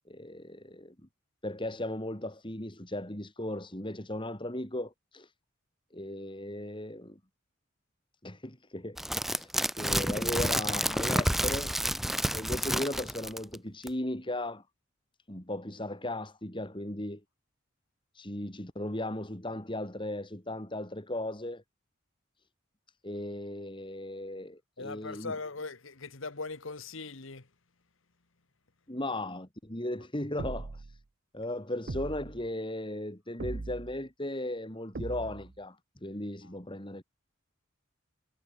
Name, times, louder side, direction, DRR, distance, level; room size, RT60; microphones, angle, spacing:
voice 1, 0.1-0.9 1.4-5.3 5.9-7.2 8.2-9.0 9.3-11.7 12.3-14.6 15.3-17.2 18.1-21.6 23.0-25.3 28.9-31.0 31.3-37.0, left 1 dB, 25° left, 3.3 m, -37 dB
sound 1, 9.0-13.6 13.9-14.0, equal, ahead, 0.4 m, -29 dB
voice 2, 24.8-27.5 36.4-36.5, left 3 dB, 70° left, 1.5 m, -40 dB
sound 2, 30.4-31.0 31.9-32.5 33.4-34.0 34.9-35.6, right 3 dB, 50° right, 0.7 m, -39 dB
head